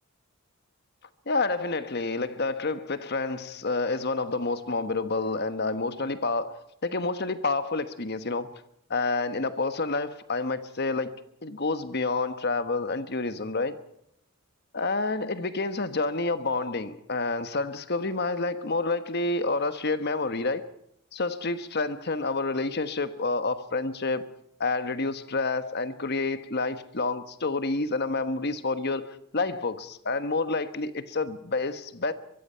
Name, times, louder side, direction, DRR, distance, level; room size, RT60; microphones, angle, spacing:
voice 1, 1.3-8.5 8.9-13.8 14.7-20.6 21.1-24.3 24.6-32.1, left 3 dB, 50° left, 1.2 m, -29 dB
23.5 x 23.0 x 5.7 m
head